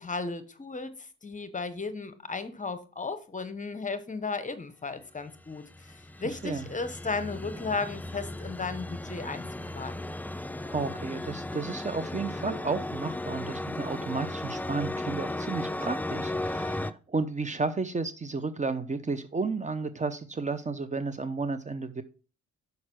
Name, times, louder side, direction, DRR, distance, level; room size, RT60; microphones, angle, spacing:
voice 1, 0.0-9.4 9.7-10.0, left 4 dB, 25° left, 1.1 m, -35 dB
sound 1, 5.3-16.9, left 1 dB, 5° left, 0.4 m, -36 dB
voice 2, 10.7-22.0, right 4 dB, 25° right, 0.8 m, -32 dB
6.5 x 5.4 x 6.0 m
cardioid pair, 90°, 30 cm